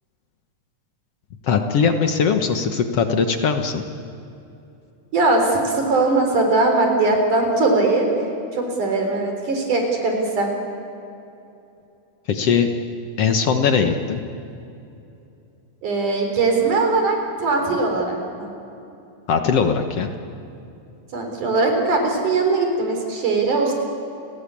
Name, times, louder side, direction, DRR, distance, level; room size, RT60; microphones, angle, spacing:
voice 1, 1.4-3.9 12.3-12.7 13.2-14.2 19.3-20.1, left 6 dB, 60° left, 6 dB, 2.0 m, -20 dB
voice 2, 5.1-8.1 8.5-10.5 15.8-18.5 21.1-23.7, right 3 dB, 80° right, 3 dB, 5.5 m, -20 dB
30.0 x 18.0 x 8.6 m, 2.8 s
omnidirectional pair, 3.5 m